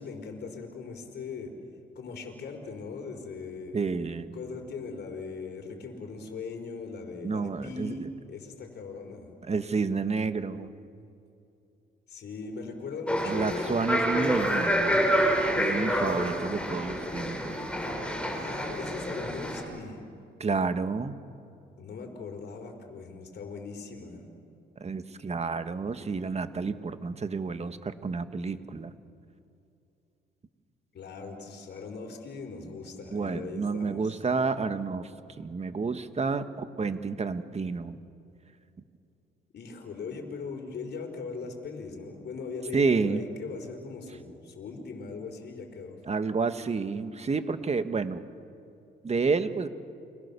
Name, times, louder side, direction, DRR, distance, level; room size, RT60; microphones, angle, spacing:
voice 1, 0.0-1.5 1.9-3.8 4.3-9.3 12.1-13.8 18.3-20.0 21.8-24.2 30.9-34.2 39.5-46.0, left 4 dB, 60° left, 3 dB, 4.4 m, -40 dB
voice 2, 3.7-4.3 7.2-8.1 9.4-10.7 13.3-15.0 15.6-18.0 20.4-21.2 24.8-28.9 33.1-35.1 35.4-38.0 42.7-43.2 46.0-48.2 49.0-49.7, right 4 dB, 35° right, 9 dB, 1.6 m, -30 dB
sound 1, 13.1-19.6, equal, 5° left, 6.4 m, -28 dB
29.5 x 24.5 x 7.0 m, 2.7 s
cardioid pair, 90°, 20 cm